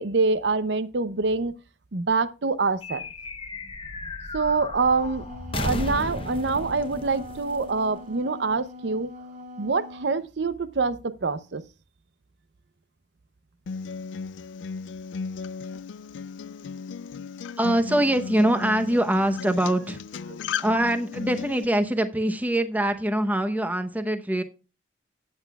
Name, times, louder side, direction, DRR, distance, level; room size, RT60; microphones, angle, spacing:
voice 1, 0.0-1.5 1.9-3.1 4.3-5.2 5.5-9.1 9.6-11.6, right 4 dB, 70° right, 0.7 m, -25 dB
sound 1, 2.8-8.5, left 2 dB, 30° left, 0.9 m, -35 dB
Wind instrument woodwind instrument, 5.0-10.2, left 2 dB, 45° right, 4.6 m, -42 dB
Acoustic guitar, 13.7-21.6, left 5 dB, 85° left, 0.4 m, -35 dB
voice 2, 17.6-20.0 20.6-24.4, right 1 dB, 10° right, 0.8 m, -23 dB
14.0 x 8.9 x 2.3 m
head